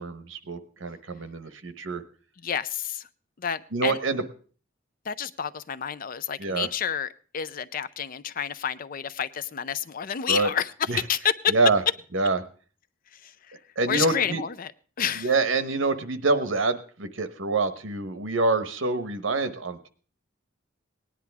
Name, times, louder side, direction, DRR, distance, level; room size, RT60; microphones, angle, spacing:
voice 1, 0.0-2.0 3.7-4.2 6.4-6.7 10.3-10.5 10.9-11.0 11.5-11.8 12.1-12.4 13.8-14.4 15.2-19.9, right 3 dB, 85° right, 10 dB, 1.1 m, -26 dB
voice 2, 2.4-3.1 3.4-4.0 5.0-11.5 13.1-13.6 13.9-14.7 15.0-15.3, left 8 dB, 45° left, 15 dB, 0.5 m, -29 dB
18.0 x 10.5 x 3.5 m, 0.40 s
head